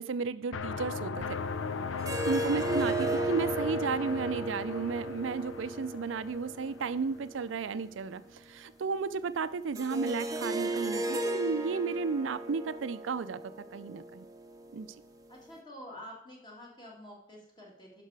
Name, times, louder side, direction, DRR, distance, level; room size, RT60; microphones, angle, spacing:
voice 1, 0.0-1.4 2.3-14.3 14.7-14.9, right 5 dB, 80° right, 14 dB, 0.4 m, -33 dB
sound 1, 0.5-7.2, left 5 dB, 85° left, 0.5 m, -37 dB
sound 2, 2.0-7.9 9.8-15.0, right 1 dB, 20° right, 0.7 m, -35 dB
voice 2, 15.3-18.0, equal, 25° left, -1 dB, 1.9 m, -48 dB
11.0 x 6.0 x 4.7 m, 0.80 s
head